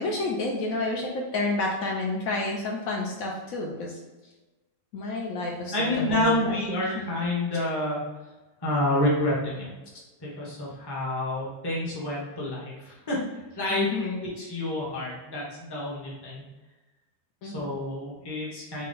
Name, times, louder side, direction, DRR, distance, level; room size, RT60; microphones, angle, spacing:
voice 1, 0.0-4.0 4.9-6.5 6.8-6.9 13.7-14.2 17.4-17.7, left 2 dB, 70° left, -1 dB, 0.9 m, -30 dB
voice 2, 5.7-8.0 8.6-9.7 10.2-13.2 13.5-13.9 14.2-16.4 17.4-18.9, left 1 dB, 20° left, -5 dB, 0.7 m, -28 dB
4.1 x 2.1 x 3.7 m, 1.2 s
omnidirectional pair, 1.6 m